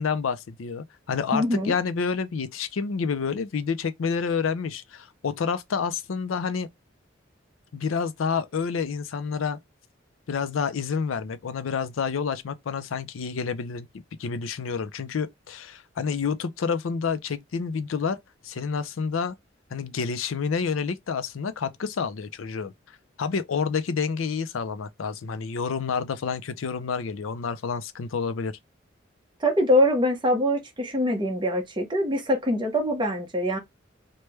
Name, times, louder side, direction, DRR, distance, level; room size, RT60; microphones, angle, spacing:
voice 1, 0.0-6.7 7.7-9.6 10.3-13.9 14.2-18.2 18.4-19.4 19.7-22.7 23.2-28.5, left 5 dB, 90° left, 0.5 m, -29 dB
voice 2, 1.3-1.7 29.4-33.6, equal, 25° right, 0.9 m, -23 dB
3.3 x 2.2 x 3.0 m
head